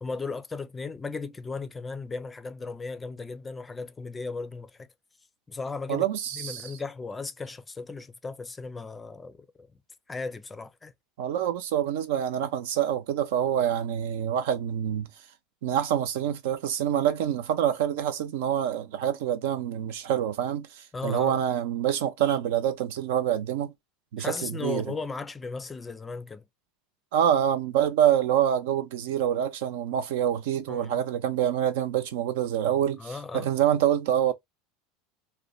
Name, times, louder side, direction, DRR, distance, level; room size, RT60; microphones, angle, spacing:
voice 1, 0.0-4.9 5.5-6.1 6.3-9.7 10.1-10.9 20.9-21.4 24.2-26.4 30.7-31.0 33.0-33.5, left 4 dB, 20° left, 0.4 m, -36 dB
voice 2, 5.9-6.7 11.2-15.1 15.6-23.7 24.1-24.9 27.1-34.3, right 10 dB, 70° right, 0.5 m, -26 dB
2.5 x 2.1 x 2.3 m
hypercardioid pair, 90°, 0 cm